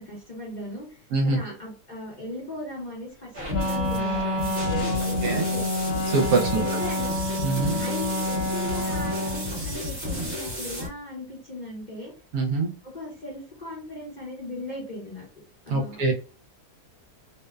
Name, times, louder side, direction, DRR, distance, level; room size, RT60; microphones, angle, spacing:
voice 1, 0.0-5.7 6.5-7.2 7.8-12.1 12.8-15.2 15.7-16.1, left 1 dB, 35° left, -4 dB, 0.8 m, -38 dB
sound 1, 3.3-10.9, left 1 dB, 40° right, 1.1 m, -32 dB
Wind instrument woodwind instrument, 3.5-9.6, left 1 dB, 70° left, 1.1 m, -28 dB
voice 2, 6.1-6.6 7.4-7.8 12.3-12.7 15.7-16.1, right 3 dB, 70° right, 0 dB, 1.1 m, -23 dB
2.7 x 2.1 x 2.3 m, 0.37 s
omnidirectional pair, 1.7 m